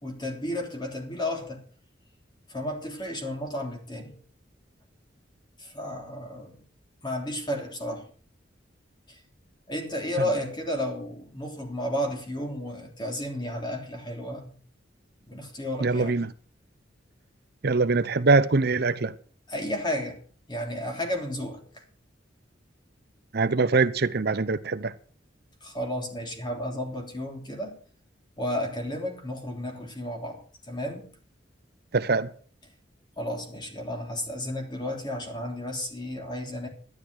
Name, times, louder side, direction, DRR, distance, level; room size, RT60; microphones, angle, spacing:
voice 1, 0.0-1.6 2.5-4.2 5.6-6.6 7.0-8.1 9.1-9.2 9.7-14.6 15.3-16.3 19.5-20.2 20.5-21.8 25.6-27.8 28.4-31.1 33.2-36.7, left 1 dB, 25° left, 3.3 m, -33 dB
voice 2, 15.8-16.3 17.6-19.1 23.3-24.9 31.9-32.3, right 3 dB, 60° right, 0.7 m, -23 dB
12.0 x 11.0 x 6.3 m
head